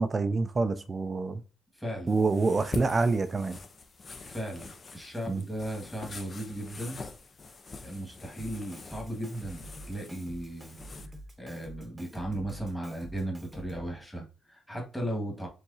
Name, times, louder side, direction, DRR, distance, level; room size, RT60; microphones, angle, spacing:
voice 1, 0.0-1.4 2.1-3.6 5.3-5.4, right 3 dB, 30° right, 0.4 m, -27 dB
voice 2, 1.7-2.2 4.3-7.0 7.8-10.8 11.4-15.5, right 1 dB, 5° left, 1.7 m, -36 dB
sound 1, 2.1-11.1, left 4 dB, 35° left, 0.6 m, -45 dB
Drum kit, 8.4-14.0, equal, 15° right, 0.9 m, -47 dB
4.7 x 3.5 x 2.7 m
cardioid pair, 90°, 0 cm